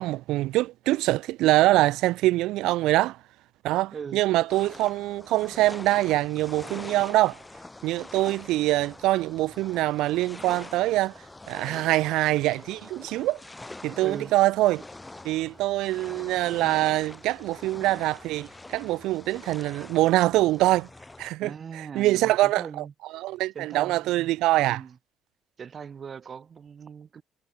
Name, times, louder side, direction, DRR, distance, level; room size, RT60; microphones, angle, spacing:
voice 1, 0.0-3.2 3.6-7.4 7.8-11.1 11.5-13.4 13.8-14.8 15.2-20.9 21.2-22.8 23.1-24.8, right 17 dB, 80° right, 0.6 m, -24 dB
sound 1, 4.5-21.3, left 2 dB, 10° left, 2.4 m, -45 dB
voice 2, 14.0-14.3 21.4-22.9 23.6-25.0 25.6-27.2, right 6 dB, 30° right, 3.3 m, -40 dB
cardioid pair, 175°, 0 cm